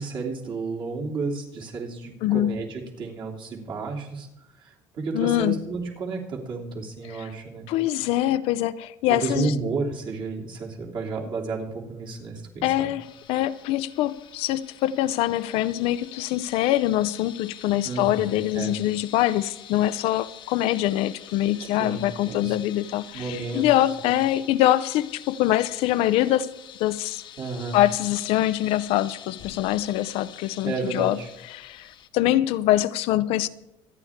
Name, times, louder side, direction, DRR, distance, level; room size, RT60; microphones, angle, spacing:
voice 1, 0.0-4.3 4.6-7.7 9.1-12.9 17.8-18.7 21.6-22.6 23.1-24.1 27.4-27.8 30.6-31.3, right 4 dB, 50° right, 3.1 m, -32 dB
voice 2, 2.2-2.6 5.1-5.6 7.1-7.3 7.7-9.5 12.6-26.5 26.8-27.2 27.7-31.2 31.5-33.5, left 14 dB, 70° left, 0.5 m, -24 dB
sound 1, 13.0-32.1, left 10 dB, 50° left, 0.9 m, -46 dB
25.0 x 9.6 x 3.6 m
supercardioid pair, 105°, 10 cm